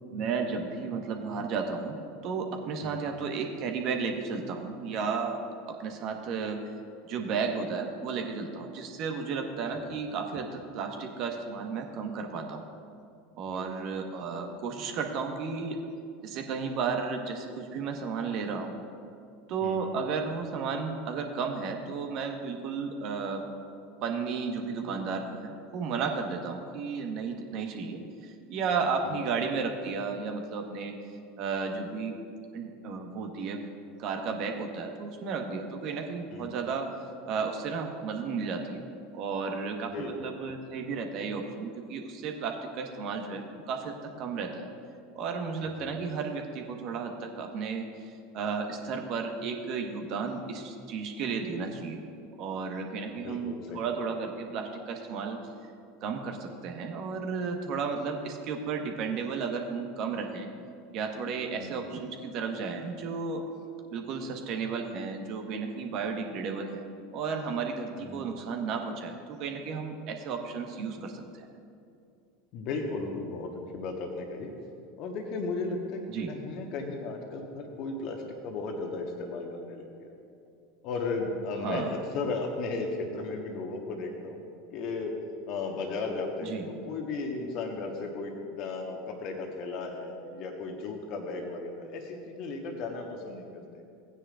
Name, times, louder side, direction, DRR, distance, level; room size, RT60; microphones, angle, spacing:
voice 1, 0.1-5.4 5.7-6.6 7.1-12.6 13.4-15.8 16.2-18.8 19.5-23.4 24.0-30.9 31.4-32.1 32.5-33.6 34.0-36.9 37.3-38.8 39.1-44.7 45.1-52.0 52.4-55.4 56.0-60.5 60.9-63.4 63.9-66.8 67.1-71.5 76.1-76.3 81.6-81.9 86.4-86.7, right 5 dB, 50° right, 3 dB, 1.3 m, -33 dB
voice 2, 53.2-53.9 61.5-61.7 68.0-68.2 72.5-74.5 75.0-76.0 76.3-80.1 80.8-84.4 84.7-85.1 85.5-93.8, left 3 dB, 50° left, 2 dB, 1.3 m, -35 dB
17.0 x 9.4 x 2.5 m, 2.5 s
hypercardioid pair, 80°, 0 cm